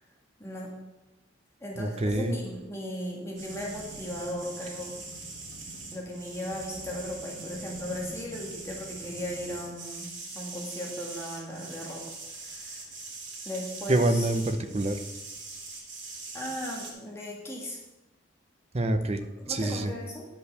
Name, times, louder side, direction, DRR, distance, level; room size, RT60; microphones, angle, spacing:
voice 1, 0.4-0.7 1.6-4.9 5.9-10.1 10.3-12.0 12.3-12.9 13.4-14.3 16.3-17.8 19.2-20.3, left 1 dB, 15° left, -2 dB, 1.7 m, -37 dB
voice 2, 1.8-2.3 13.9-15.0 18.7-19.9, right 2 dB, 35° right, 9 dB, 0.6 m, -26 dB
sound 1, 3.4-16.9, right 3 dB, 80° right, 2.3 m, -42 dB
10.5 x 5.4 x 6.6 m, 1.0 s
head